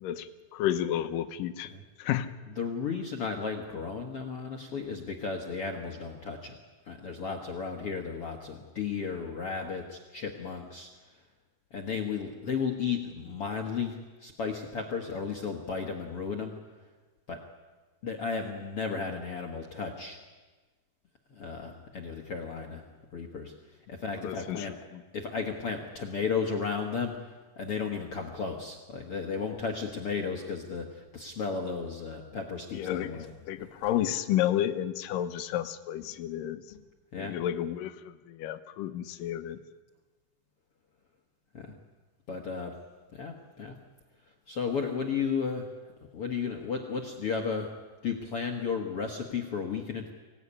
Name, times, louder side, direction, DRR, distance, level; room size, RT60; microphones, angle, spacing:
voice 1, 0.0-1.7 2.0-2.3 24.2-24.7 32.7-36.6 37.2-39.6, left 11 dB, 70° left, 10 dB, 2.3 m, -31 dB
voice 2, 2.6-6.6 6.9-10.9 11.7-16.5 17.3-17.4 18.0-20.2 21.3-24.8 25.1-33.3 33.6-33.8 36.7-36.8 37.1-37.4 41.5-41.8 42.3-42.8 43.1-43.8 44.5-45.7 46.1-47.7 48.0-50.1, left 5 dB, 50° left, 2 dB, 1.7 m, -34 dB
25.0 x 18.0 x 9.9 m, 1.3 s
omnidirectional pair, 4.7 m